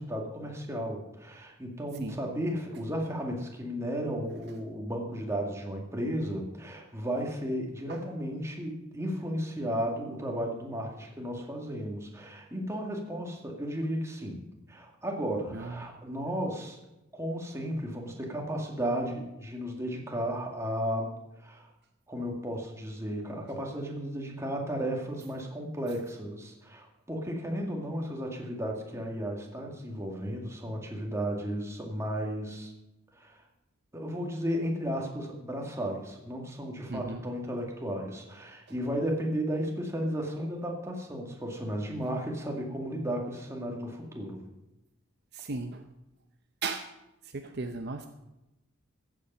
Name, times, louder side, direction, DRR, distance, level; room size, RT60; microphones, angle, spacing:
voice 1, 0.0-16.8 17.1-21.1 21.4-21.7 22.1-32.7 33.2-33.4 33.9-44.4, equal, 15° right, 0 dB, 2.1 m, -34 dB
voice 2, 15.5-15.9 36.9-37.2 45.3-45.8 46.6-46.9 47.2-48.1, right 3 dB, 55° right, 6 dB, 0.7 m, -36 dB
14.5 x 8.6 x 5.6 m, 0.94 s
head